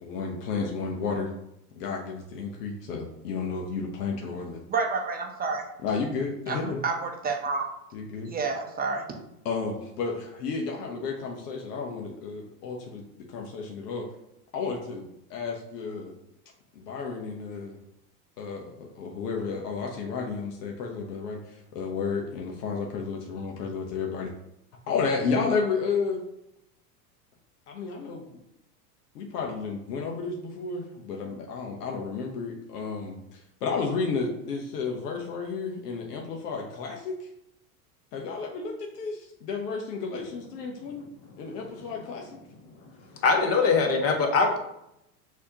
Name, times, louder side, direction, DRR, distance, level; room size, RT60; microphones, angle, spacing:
voice 1, 0.0-1.3 1.7-4.6 5.8-6.8 7.9-8.3 9.4-13.0 13.3-14.1 14.5-15.0 15.3-16.1 16.7-17.8 18.4-24.3 24.9-26.2 27.7-28.3 29.1-37.3 38.1-41.1 41.4-42.4, left 4 dB, 80° left, 0 dB, 0.9 m, -32 dB
voice 2, 4.7-5.6 6.5-7.7 8.3-9.0, right 4 dB, 20° right, 2 dB, 0.7 m, -29 dB
voice 3, 43.2-44.6, left 4 dB, 30° left, 4 dB, 0.8 m, -22 dB
6.2 x 2.8 x 2.8 m, 0.81 s
hypercardioid pair, 105°, 47 cm